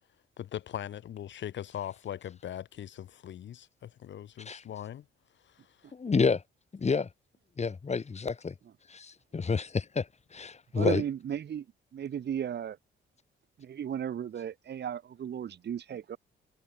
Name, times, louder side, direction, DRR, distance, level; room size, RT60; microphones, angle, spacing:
voice 1, 0.4-5.0 5.4-5.9, left 10 dB, 65° left, 3.4 m, -40 dB
voice 2, 5.9-6.4 6.7-7.1 7.6-8.5 8.9-11.0, left 5 dB, 35° left, 5.2 m, -29 dB
voice 3, 10.7-11.7 11.9-12.8 13.6-16.2, right 9 dB, 60° right, 3.8 m, -35 dB
cardioid pair, 90°, 20 cm